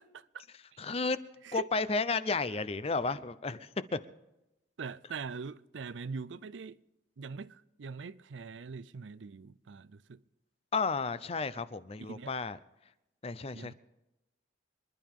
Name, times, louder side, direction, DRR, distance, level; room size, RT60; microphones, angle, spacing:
voice 1, 0.8-1.2 1.5-4.0 10.7-12.6 13.2-13.7, left 4 dB, 30° left, 0.6 m, -32 dB
voice 2, 4.8-6.8 7.2-10.2 12.0-12.3 13.5-13.7, right 5 dB, 85° right, 0.5 m, -42 dB
25.5 x 11.0 x 3.7 m
head